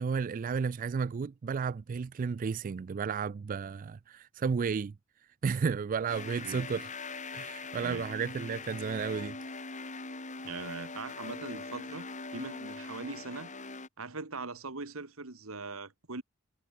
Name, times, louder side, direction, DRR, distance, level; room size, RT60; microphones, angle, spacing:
voice 1, 0.0-4.9 5.4-6.9 7.3-9.4, right 5 dB, 40° right, 0.3 m, -33 dB
sound 1, 6.1-13.9, left 3 dB, 35° left, 3.8 m, -42 dB
voice 2, 10.4-12.1 12.3-13.5 14.0-16.2, right 3 dB, 90° right, 1.9 m, -41 dB
head